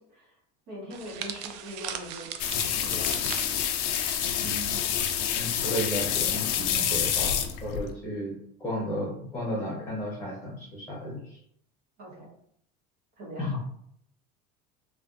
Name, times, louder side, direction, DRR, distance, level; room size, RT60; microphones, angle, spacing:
voice 1, 0.7-2.3 2.6-3.3 12.0-12.3 13.2-13.6, equal, 55° right, -3 dB, 1.4 m, -41 dB
sound 1, 0.9-5.2 5.4-5.7 6.5-6.8, right 9 dB, 85° right, 0.4 m, -40 dB
sound 2, 2.4-7.9, left 9 dB, 65° left, 0.5 m, -28 dB
voice 2, 4.4-4.8 5.3-8.3 8.6-11.4 13.4-13.6, equal, 10° left, -6 dB, 0.9 m, -33 dB
3.2 x 2.4 x 2.6 m, 0.70 s
supercardioid pair, 140°, 20 cm